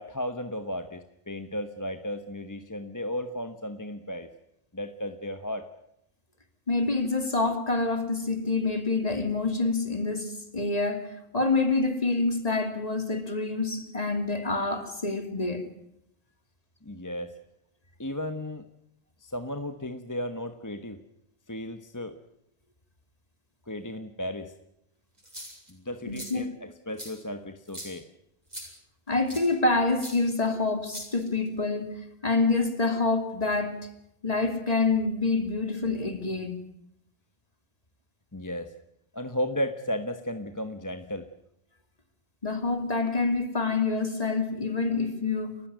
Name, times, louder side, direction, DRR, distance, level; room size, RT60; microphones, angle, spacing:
voice 1, 0.0-4.3 4.7-5.7 16.8-17.3 18.0-18.7 19.2-21.0 21.5-22.2 23.7-24.5 25.7-28.1 38.3-38.7 39.1-41.3, left 1 dB, 20° left, 1.2 m, -34 dB
voice 2, 6.7-15.6 26.1-26.5 29.1-33.9 34.2-36.6 42.4-45.6, left 3 dB, 35° left, 2.8 m, -27 dB
sound 1, 25.2-25.7 26.1-26.3 27.0-27.1 27.7-27.9 28.5-28.7 29.3-29.5 30.0-30.1 30.9-31.5, equal, 40° right, 7.7 m, -41 dB
29.5 x 15.5 x 9.5 m
omnidirectional pair, 1.1 m